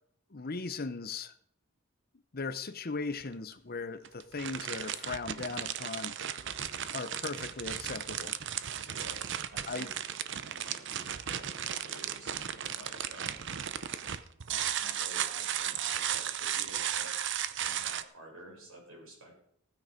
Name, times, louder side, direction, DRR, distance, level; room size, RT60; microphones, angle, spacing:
voice 1, 0.3-1.3 2.3-6.1 6.9-8.3 9.7-9.9, left 4 dB, 45° left, 12 dB, 0.8 m, -38 dB
sound 1, 3.2-3.3 4.0-18.0, right 10 dB, 55° right, 0.7 m, -35 dB
voice 2, 8.8-9.2 9.5-9.9 10.4-13.5 14.5-19.4, right 1 dB, 70° right, -2 dB, 7.0 m, -51 dB
15.5 x 9.5 x 5.1 m, 0.70 s
head